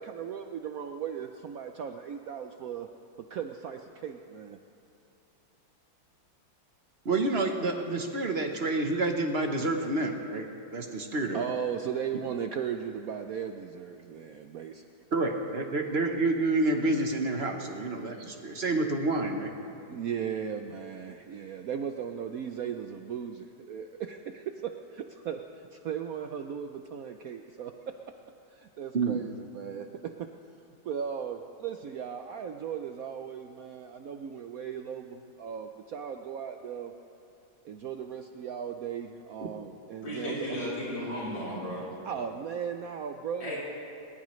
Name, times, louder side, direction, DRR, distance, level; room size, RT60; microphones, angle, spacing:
voice 1, 0.0-2.9 3.3-4.6 11.3-14.8 19.9-25.4 25.7-27.9 28.5-30.3 30.8-36.9 37.6-40.6 42.0-43.6, right 8 dB, 70° right, 6 dB, 0.8 m, -37 dB
voice 2, 7.0-10.4 10.7-11.4 15.1-19.5 28.9-29.2, right 2 dB, 40° right, 4 dB, 1.0 m, -28 dB
voice 3, 40.0-41.9 43.4-43.6, equal, 70° left, -8 dB, 4.8 m, -34 dB
21.0 x 19.5 x 3.2 m, 2.8 s
omnidirectional pair, 2.1 m